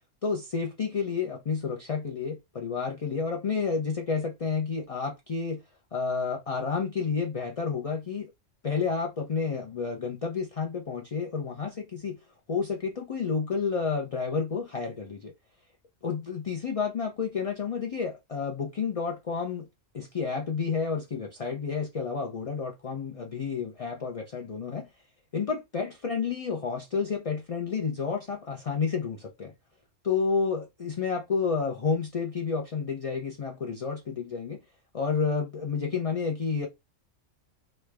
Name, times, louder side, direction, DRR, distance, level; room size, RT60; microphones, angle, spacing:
voice 1, 0.2-5.6 5.9-8.3 8.6-12.2 12.5-15.3 16.0-19.7 19.9-24.9 25.3-29.5 30.0-34.6 34.9-36.7, left 5 dB, 50° left, 0.4 m, -30 dB
3.2 x 2.3 x 3.3 m
omnidirectional pair, 1.3 m